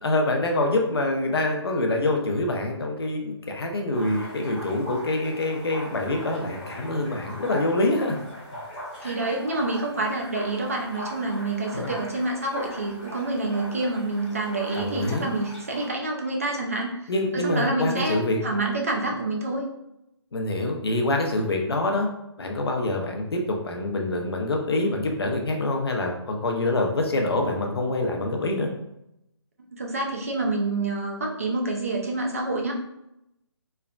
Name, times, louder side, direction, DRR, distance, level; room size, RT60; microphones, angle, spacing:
voice 1, 0.0-8.2 9.0-9.2 11.7-11.9 14.7-15.3 17.1-18.4 20.3-22.1 22.4-28.7, left 2 dB, 60° left, 2 dB, 0.6 m, -25 dB
sound 1, 3.9-15.9, equal, 20° left, 0.8 m, -40 dB
voice 2, 9.0-19.7 29.7-32.7, right 2 dB, 30° right, 0 dB, 0.4 m, -27 dB
3.1 x 2.0 x 2.4 m, 0.84 s
hypercardioid pair, 175°, 15 cm